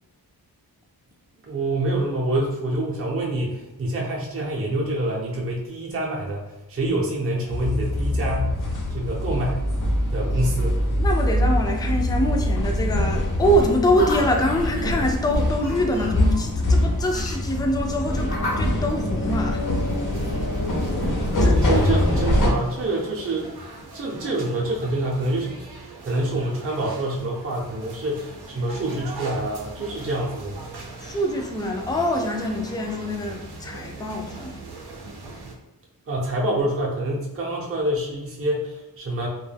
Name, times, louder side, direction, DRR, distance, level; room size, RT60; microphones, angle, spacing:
voice 1, 1.4-6.4 6.7-8.6 8.9-9.6 10.1-10.8 21.6-23.5 23.9-30.6 36.1-39.3, right 1 dB, 35° right, -3 dB, 0.5 m, -26 dB
sound 1, 7.5-22.5, left 1 dB, 55° left, 0.6 m, -23 dB
voice 2, 11.0-19.6 21.4-21.6 31.0-34.6, equal, 10° left, 2 dB, 0.3 m, -24 dB
sound 2, 13.9-23.5, left 1 dB, 75° left, 0.9 m, -35 dB
sound 3, 19.7-35.5, right 3 dB, 90° right, 0.6 m, -40 dB
2.2 x 2.1 x 3.3 m, 0.96 s
wide cardioid pair, 80°, 38 cm